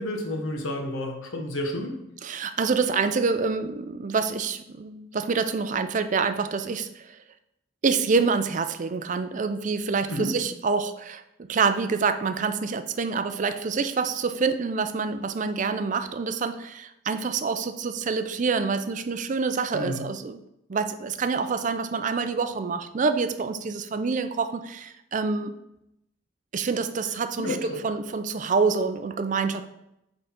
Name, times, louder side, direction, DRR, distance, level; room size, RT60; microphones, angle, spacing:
voice 1, 0.0-1.9 10.1-10.3 19.7-20.0 27.4-27.8, left 1 dB, 85° left, 2 dB, 1.1 m, -30 dB
voice 2, 2.2-7.2 7.8-20.4 20.7-25.5 26.5-29.6, right 4 dB, 40° right, 10 dB, 0.4 m, -27 dB
8.7 x 3.8 x 3.7 m, 0.83 s
head